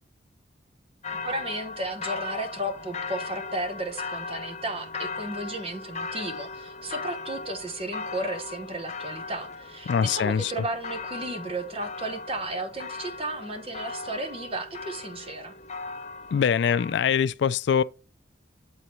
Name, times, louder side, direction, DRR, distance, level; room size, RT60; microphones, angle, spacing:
sound 1, 1.0-17.2, left 4 dB, 35° left, 0.7 m, -38 dB
voice 1, 1.2-15.5, right 1 dB, 30° right, 1.0 m, -34 dB
voice 2, 9.9-10.6 16.3-17.8, left 7 dB, 65° left, 0.3 m, -23 dB
8.5 x 3.9 x 4.4 m
head